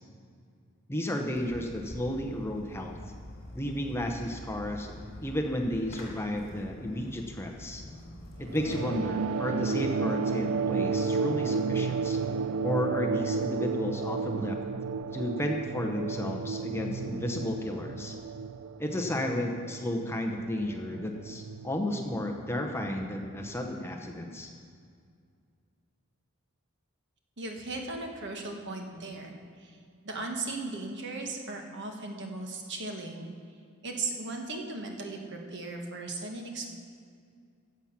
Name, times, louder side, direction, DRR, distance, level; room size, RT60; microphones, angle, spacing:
voice 1, 0.9-3.0 3.5-7.8 8.4-12.2 12.6-14.6 15.1-18.2 18.8-24.5, left 1 dB, 10° left, 3 dB, 0.8 m, -33 dB
Fireworks, 1.3-8.8, left 1 dB, 45° left, 2.7 m, -46 dB
sound 1, 8.5-23.4, right 5 dB, 75° right, 0.4 m, -32 dB
voice 2, 27.4-29.8 30.0-33.3 33.8-36.8, right 2 dB, 55° right, 2 dB, 1.4 m, -37 dB
15.5 x 7.3 x 5.9 m, 2.2 s
head